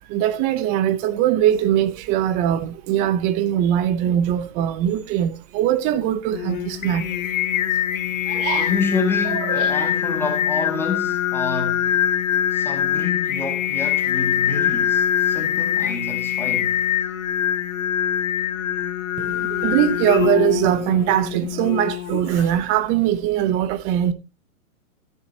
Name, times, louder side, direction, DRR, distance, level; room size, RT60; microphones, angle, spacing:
voice 1, 0.1-7.0 8.3-8.7 9.3-9.9 19.2-24.1, right 11 dB, 20° right, 0.6 m, -21 dB
Singing, 6.3-22.6, left 10 dB, 65° left, 2.0 m, -23 dB
voice 2, 8.5-11.9 12.5-16.8, left 4 dB, 5° left, 2.2 m, -28 dB
13.0 x 10.5 x 2.8 m
hypercardioid pair, 145°, 43 cm